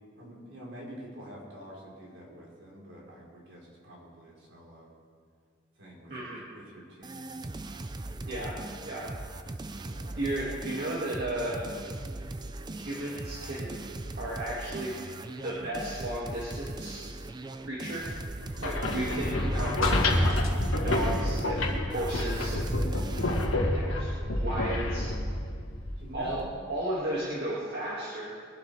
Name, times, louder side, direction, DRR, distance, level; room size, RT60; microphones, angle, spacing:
voice 1, 0.2-4.9 5.8-7.4 8.2-8.5 9.7-10.2 26.0-26.5, equal, 70° right, -4 dB, 4.1 m, -47 dB
voice 2, 6.1-6.4 8.3-8.6 8.8-9.1 10.2-11.6 12.7-13.8 14.2-14.9 15.3-17.1 17.7-18.1 18.6-20.1 20.8-22.8 23.7-25.1 26.1-26.4 26.7-28.3, right 1 dB, 50° right, -8 dB, 2.3 m, -34 dB
sound 1, 7.0-23.5, right 2 dB, 20° right, 0.4 m, -40 dB
sound 2, 18.4-26.4, left 1 dB, 90° left, 1.7 m, -28 dB
22.0 x 11.5 x 3.5 m, 2.1 s
head